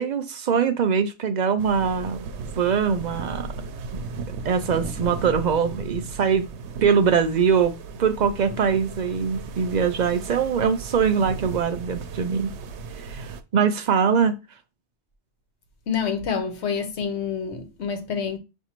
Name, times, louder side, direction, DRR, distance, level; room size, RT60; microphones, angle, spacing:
voice 1, 0.0-2.2 2.6-3.5 4.4-6.5 6.8-12.5 13.0-14.4, right 6 dB, 55° right, 0.5 m, -22 dB
sound 1, 1.6-13.4, right 4 dB, 80° right, 0.9 m, -36 dB
voice 2, 15.9-18.4, left 6 dB, 75° left, 1.2 m, -27 dB
6.6 x 2.6 x 2.9 m
omnidirectional pair, 1.1 m